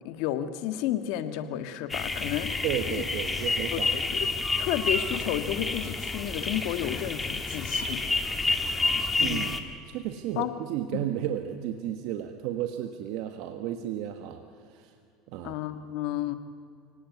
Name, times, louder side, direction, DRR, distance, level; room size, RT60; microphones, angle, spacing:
voice 1, 0.0-3.0 3.7-4.3 4.6-8.0 9.2-9.5 10.4-10.5 10.9-11.1 15.4-16.4, left 12 dB, 70° left, 9 dB, 1.7 m, -32 dB
sound 1, 1.9-9.6, left 3 dB, 15° left, 2.2 m, -29 dB
voice 2, 2.6-4.1 9.2-14.4 14.7-14.9 15.3-15.5, right 11 dB, 70° right, 6 dB, 1.6 m, -33 dB
29.0 x 18.0 x 9.5 m, 2.5 s
supercardioid pair, 115°, 0 cm